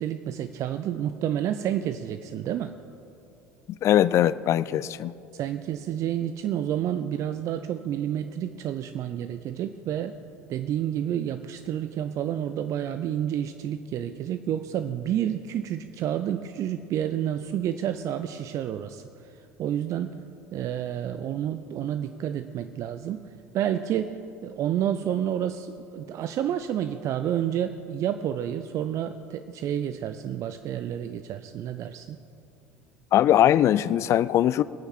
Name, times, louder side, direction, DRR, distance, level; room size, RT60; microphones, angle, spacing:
voice 1, 0.0-2.7 5.3-10.2 10.5-19.0 19.6-20.2 20.5-23.2 23.5-24.2 24.4-32.2, right 10 dB, 40° right, 10 dB, 0.5 m, -29 dB
voice 2, 3.8-5.1 33.1-34.6, left 11 dB, 35° left, 17 dB, 0.3 m, -21 dB
21.5 x 9.0 x 4.3 m, 2.7 s
figure-of-eight pair, 70°, 8 cm